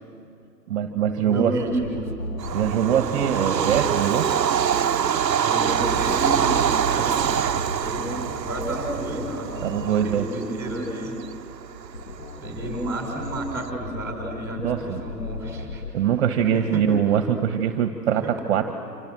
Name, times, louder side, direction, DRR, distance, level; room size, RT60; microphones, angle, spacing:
voice 1, 0.7-1.6 2.5-4.3 9.6-10.3 14.6-15.0 15.9-18.7, right 8 dB, 40° right, 7 dB, 1.6 m, -23 dB
voice 2, 1.2-2.1 3.5-3.7 5.4-7.4 7.7-11.1 12.4-15.8 16.5-16.8 18.2-18.3, right 1 dB, 5° right, 1 dB, 5.1 m, -31 dB
sound 1, 1.6-3.9 5.9-9.9 11.9-15.9, left 3 dB, 65° left, 3.0 m, -36 dB
Bird vocalization bird call bird song / Train, 2.4-13.6, right 8 dB, 80° right, 1.0 m, -25 dB
28.0 x 27.0 x 7.9 m, 2.5 s
hypercardioid pair, 140°, 49 cm